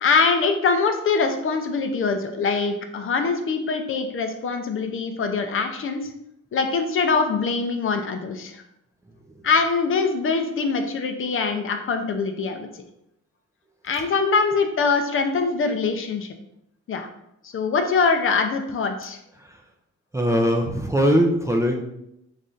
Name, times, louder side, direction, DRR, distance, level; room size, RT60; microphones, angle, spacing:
voice 1, 0.0-6.0 6.5-8.6 9.4-12.7 13.8-16.3 16.9-17.1 17.4-19.2, left 4 dB, 45° left, 6 dB, 0.5 m, -23 dB
voice 2, 20.1-21.8, equal, 10° right, 1 dB, 0.4 m, -20 dB
3.2 x 2.6 x 3.7 m, 0.79 s
cardioid pair, 90°, 30 cm